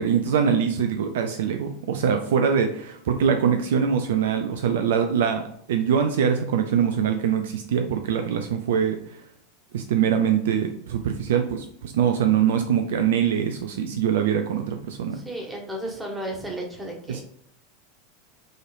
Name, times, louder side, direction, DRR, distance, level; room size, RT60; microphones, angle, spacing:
voice 1, 0.0-5.4 5.7-9.0 9.7-15.2, right 7 dB, 65° right, 6 dB, 0.4 m, -23 dB
voice 2, 15.1-17.2, right 1 dB, 10° right, 0 dB, 1.5 m, -33 dB
6.3 x 3.2 x 2.5 m, 0.68 s
figure-of-eight pair, 85°, 0 cm